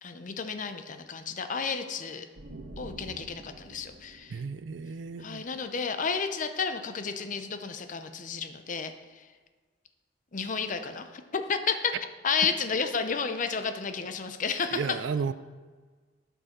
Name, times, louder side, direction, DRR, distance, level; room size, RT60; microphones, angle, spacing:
voice 1, 0.0-2.3 2.8-4.4 5.2-9.3 10.3-11.9 12.2-15.0, left 5 dB, 45° left, 8 dB, 0.6 m, -32 dB
sound 1, 2.3-6.0, right 2 dB, 60° right, 1.1 m, -48 dB
voice 2, 4.3-5.4 14.7-15.3, right 5 dB, 85° right, 14 dB, 0.4 m, -33 dB
12.5 x 5.5 x 4.3 m, 1.4 s
head